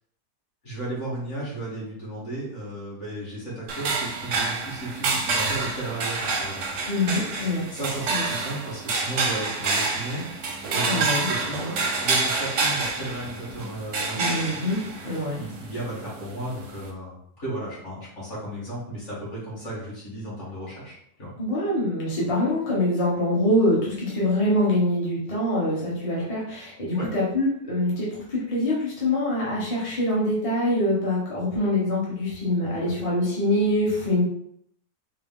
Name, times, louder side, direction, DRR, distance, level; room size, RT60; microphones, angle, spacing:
voice 1, 0.6-6.7 7.7-10.3 10.7-14.4 15.3-21.3 26.9-27.1 32.8-32.9, right 1 dB, 45° left, -6 dB, 1.9 m, -34 dB
sound 1, 3.7-16.9, right 3 dB, 60° right, 0.8 m, -28 dB
voice 2, 6.9-7.7 8.1-8.2 10.9-11.3 14.2-15.4 21.4-34.2, left 1 dB, 25° left, -7 dB, 0.8 m, -24 dB
4.6 x 2.1 x 3.6 m, 0.70 s
omnidirectional pair, 1.8 m